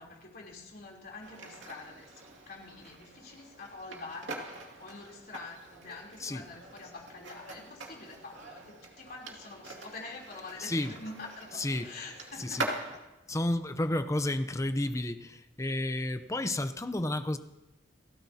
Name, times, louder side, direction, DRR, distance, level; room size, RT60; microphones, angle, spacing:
voice 1, 0.0-12.7, left 3 dB, 55° left, -2 dB, 3.4 m, -46 dB
sound 1, 1.2-13.0, right 2 dB, 85° right, 2.4 m, -43 dB
voice 2, 10.6-10.9 11.5-11.9 12.4-12.7 13.3-17.4, left 1 dB, 15° left, 10 dB, 0.6 m, -31 dB
29.0 x 13.0 x 2.8 m, 1.0 s
head